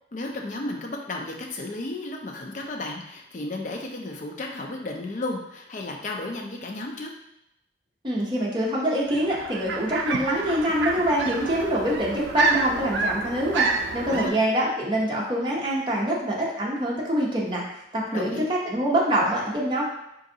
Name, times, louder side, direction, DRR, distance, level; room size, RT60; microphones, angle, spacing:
voice 1, 0.1-7.1 14.1-14.3 18.1-18.4, left 2 dB, 45° left, 1 dB, 0.4 m, -33 dB
voice 2, 8.0-17.6 17.9-19.8, equal, 25° right, -4 dB, 0.6 m, -25 dB
sound 1, 9.0-14.3, right 4 dB, 85° right, 0.4 m, -28 dB
3.8 x 2.5 x 2.7 m, 0.84 s
head